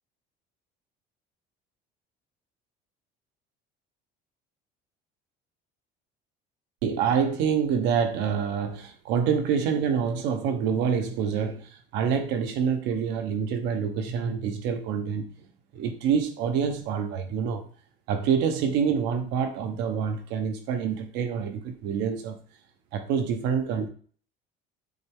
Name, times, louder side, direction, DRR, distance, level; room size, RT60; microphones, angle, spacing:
voice 1, 6.8-15.2 15.7-17.6 18.1-22.4 22.9-23.9, right 7 dB, 80° right, 6 dB, 1.1 m, -26 dB
7.8 x 3.4 x 3.6 m, 0.44 s
cardioid pair, 160°, 19 cm